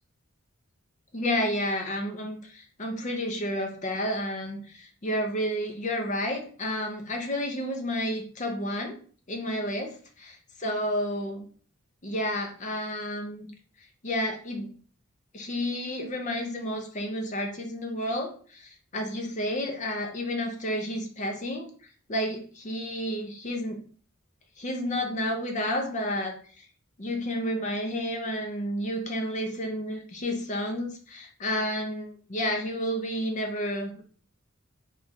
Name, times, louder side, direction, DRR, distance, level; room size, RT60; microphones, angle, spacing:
voice 1, 1.1-9.0 9.3-11.5 12.0-13.5 14.0-14.8 15.3-21.7 22.1-23.8 24.6-26.3 27.0-34.0, equal, 35° left, 3 dB, 0.6 m, -31 dB
3.1 x 2.4 x 4.0 m, 0.42 s
head